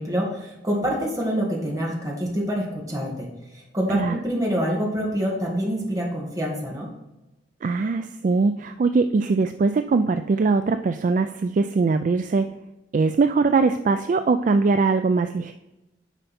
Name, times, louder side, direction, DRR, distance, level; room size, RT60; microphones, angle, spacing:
voice 1, 0.0-6.9, equal, 20° right, -2 dB, 2.0 m, -26 dB
voice 2, 7.6-12.5 12.9-15.5, right 4 dB, 45° right, 8 dB, 0.3 m, -21 dB
9.1 x 5.4 x 4.2 m, 0.97 s
head